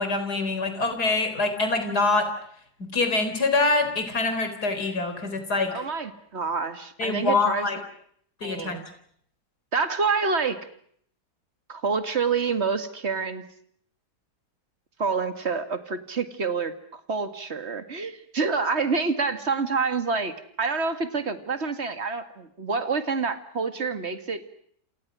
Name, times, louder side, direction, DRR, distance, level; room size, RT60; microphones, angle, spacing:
voice 1, 0.0-2.3 2.9-5.7 7.0-7.8 8.4-8.8, left 3 dB, 75° left, 8 dB, 4.6 m, -25 dB
voice 2, 5.7-7.7 8.4-8.9 9.7-10.6 11.7-13.4 15.0-24.4, right 4 dB, 40° right, 9 dB, 2.2 m, -27 dB
28.5 x 28.5 x 6.3 m, 0.66 s
omnidirectional pair, 1.7 m